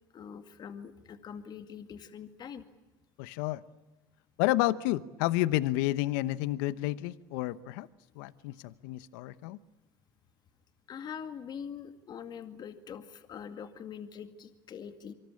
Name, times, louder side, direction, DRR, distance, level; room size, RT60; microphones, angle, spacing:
voice 1, 0.1-2.6 10.9-15.1, left 7 dB, 40° left, 9 dB, 2.2 m, -43 dB
voice 2, 3.2-3.6 4.4-7.9 8.2-9.6, left 16 dB, 75° left, 16 dB, 0.9 m, -30 dB
26.0 x 25.0 x 8.5 m, 1.1 s
supercardioid pair, 100°, 11 cm